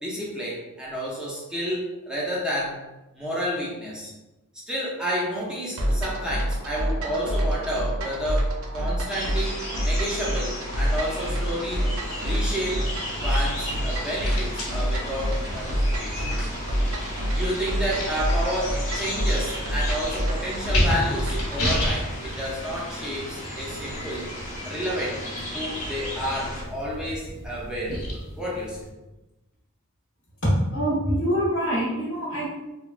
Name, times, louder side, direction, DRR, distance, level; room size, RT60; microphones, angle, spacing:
voice 1, 0.0-2.8 3.1-4.1 4.7-11.9 12.2-12.9 13.1-16.5 17.3-24.3 24.6-25.2 25.5-28.0 28.4-28.9, equal, 5° right, -6 dB, 0.5 m, -30 dB
sound 1, 5.8-21.7, equal, 75° right, 0.5 m, -27 dB
sound 2, 9.1-26.6, left 1 dB, 35° left, 0.9 m, -36 dB
sound 3, 12.0-28.9, equal, 90° left, 1.1 m, -34 dB
voice 2, 30.4-32.5, equal, 70° left, -10 dB, 0.9 m, -24 dB
3.1 x 2.2 x 2.4 m, 1.0 s
head